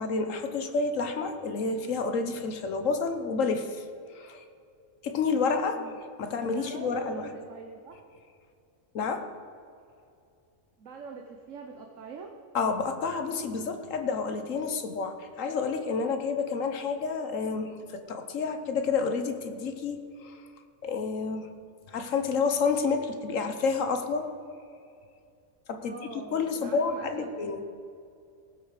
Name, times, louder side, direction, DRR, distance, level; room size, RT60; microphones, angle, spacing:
voice 1, 0.0-3.8 4.1-4.4 5.0-5.8 6.2-7.3 8.9-9.2 12.5-20.4 20.8-21.5 21.9-24.3 25.7-27.6, left 4 dB, 70° left, 7 dB, 1.4 m, -29 dB
voice 2, 6.5-8.0 10.8-12.3 25.8-27.6, right 5 dB, 70° right, 3 dB, 1.3 m, -43 dB
18.0 x 8.0 x 5.0 m, 2.4 s
omnidirectional pair, 1.4 m